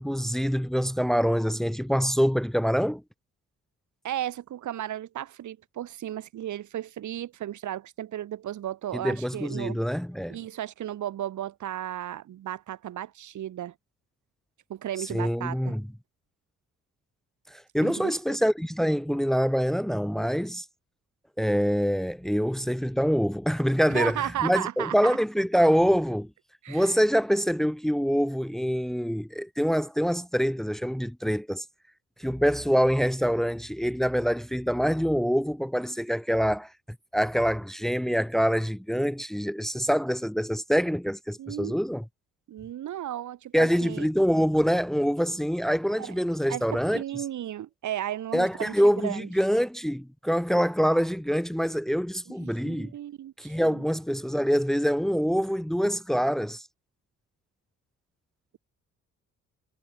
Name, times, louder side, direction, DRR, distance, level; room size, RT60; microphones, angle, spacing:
voice 1, 0.0-3.0 8.9-10.4 15.0-15.9 17.5-20.7 21.4-24.2 24.4-26.3 26.7-31.6 32.2-36.7 37.1-42.0 43.5-47.0 48.3-52.9 53.4-56.6, equal, ahead, 2.3 m, -25 dB
voice 2, 4.0-9.8 10.3-13.7 14.7-15.7 17.8-18.4 23.9-25.2 26.6-26.9 41.4-41.8 42.5-44.1 46.0-46.1 46.5-49.3 52.3-53.8, right 12 dB, 75° right, 7.9 m, -34 dB
cardioid pair, 90°, 30 cm